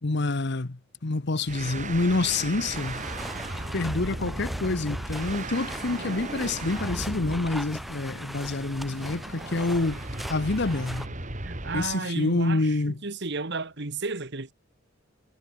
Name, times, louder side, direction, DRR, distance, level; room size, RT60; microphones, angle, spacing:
voice 1, 0.0-3.1 3.7-10.0 10.3-11.1 11.7-12.9, left 2 dB, 55° left, 1.0 m, -27 dB
sound 1, 1.4-12.0, right 2 dB, 35° right, 3.0 m, -36 dB
sound 2, 2.7-11.1, equal, ahead, 1.7 m, -40 dB
voice 2, 11.4-14.5, right 3 dB, 55° right, 1.8 m, -33 dB
head